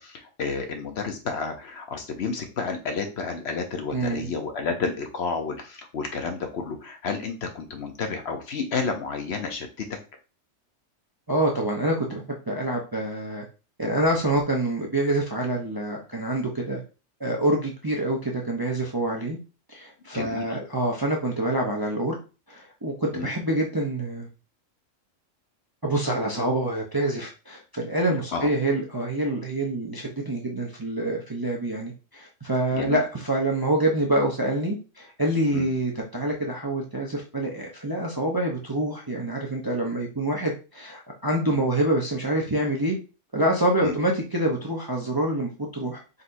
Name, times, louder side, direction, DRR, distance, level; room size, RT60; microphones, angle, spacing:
voice 1, 0.0-10.0 20.1-20.5 23.1-23.3 28.3-28.5 32.7-33.0 35.5-35.7 41.5-41.6 43.8-43.9, left 4 dB, 60° left, 5 dB, 0.9 m, -31 dB
voice 2, 3.9-4.3 11.3-13.4 13.8-16.8 17.2-19.4 19.7-22.2 22.5-24.3 25.8-43.0 43.3-46.2, right 1 dB, 25° right, -1 dB, 0.5 m, -26 dB
4.2 x 4.1 x 2.6 m, 0.32 s
omnidirectional pair, 1.3 m